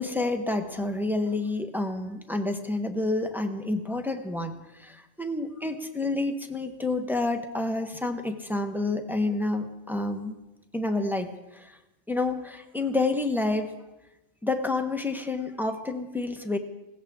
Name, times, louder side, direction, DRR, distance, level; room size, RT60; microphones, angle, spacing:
voice 1, 0.0-10.3 10.7-11.7 12.1-13.7 14.4-16.6, left 2 dB, ahead, 5 dB, 0.9 m, -29 dB
20.5 x 17.5 x 3.6 m, 1.0 s
omnidirectional pair, 1.4 m